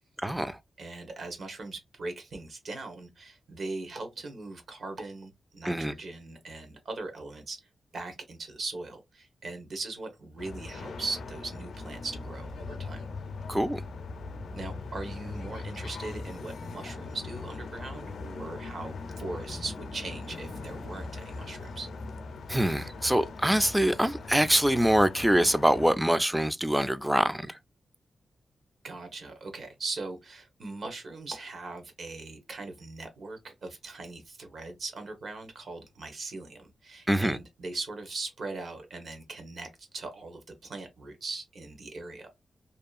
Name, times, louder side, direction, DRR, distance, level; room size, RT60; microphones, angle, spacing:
voice 1, 0.2-0.6 5.6-5.9 13.5-13.8 22.5-27.5 37.1-37.4, right 1 dB, 5° right, 0.3 m, -24 dB
voice 2, 0.8-7.6 7.9-13.1 14.5-21.9 28.8-42.3, right 3 dB, 65° right, 1.0 m, -40 dB
sound 1, 10.4-26.0, left 3 dB, 80° left, 0.5 m, -40 dB
2.7 x 2.3 x 2.4 m
cardioid pair, 90°, 0 cm